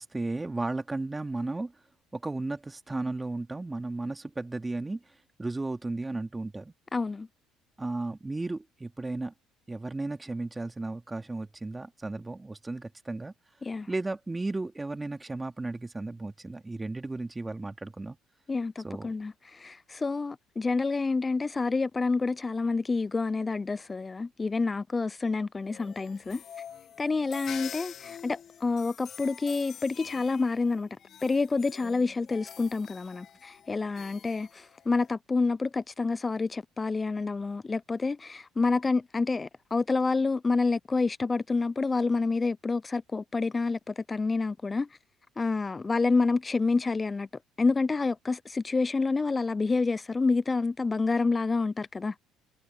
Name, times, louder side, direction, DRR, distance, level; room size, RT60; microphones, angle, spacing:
voice 1, 0.0-1.7 2.1-5.0 5.4-6.7 7.8-9.3 9.7-13.3 13.9-18.2 18.8-19.1, right 2 dB, 15° right, 2.7 m, -34 dB
voice 2, 6.9-7.3 13.6-13.9 18.5-26.4 27.0-30.9 31.2-44.9 45.4-47.3 47.6-52.2, left 3 dB, 25° left, 0.4 m, -28 dB
sound 1, 25.6-35.1, left 9 dB, 55° left, 1.8 m, -46 dB
supercardioid pair, 70°, 0 cm